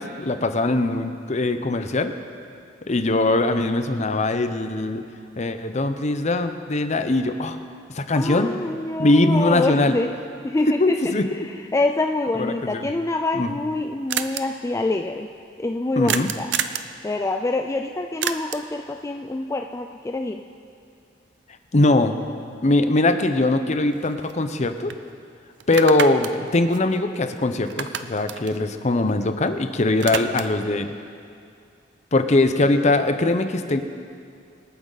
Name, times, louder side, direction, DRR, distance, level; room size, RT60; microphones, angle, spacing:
voice 1, 0.0-2.1 2.9-5.0 5.4-7.6 7.9-8.5 9.0-9.9 10.8-11.5 12.3-12.9 13.3-13.5 16.0-16.3 21.7-22.2 22.6-24.9 25.7-30.9 32.1-33.8, left 2 dB, 40° left, 8 dB, 0.8 m, -21 dB
voice 2, 8.1-10.1 10.4-11.1 11.4-15.3 15.6-16.5 17.0-20.4, left 2 dB, 15° left, 4 dB, 0.4 m, -26 dB
sound 1, 14.1-14.4 16.1-16.9 18.2-18.7 22.9-23.0 23.4-24.6 24.9-25.0 25.6-27.4 27.7-29.5 29.8-30.6, right 8 dB, 75° right, 0.6 m, -29 dB
25.0 x 9.1 x 4.0 m, 2.4 s
head